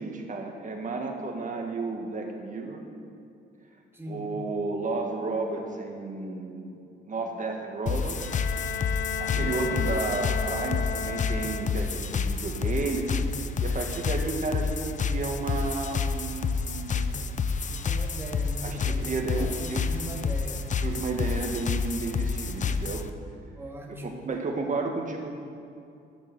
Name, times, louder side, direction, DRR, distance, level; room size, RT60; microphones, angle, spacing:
voice 1, 0.0-2.8 4.1-6.8 7.1-8.2 9.2-17.2 18.6-19.8 20.8-23.0 24.0-25.3, right 3 dB, 40° right, 2 dB, 1.9 m, -32 dB
voice 2, 3.9-4.3 9.3-9.8 17.7-19.1 19.4-20.8 23.6-24.3, equal, 10° right, -1 dB, 2.2 m, -39 dB
sound 1, 7.9-23.1, left 5 dB, 40° left, 0.6 m, -29 dB
Bowed string instrument, 8.2-12.1, left 7 dB, 60° left, 0.9 m, -34 dB
12.0 x 6.8 x 7.8 m, 2.6 s
cardioid pair, 90°, 20 cm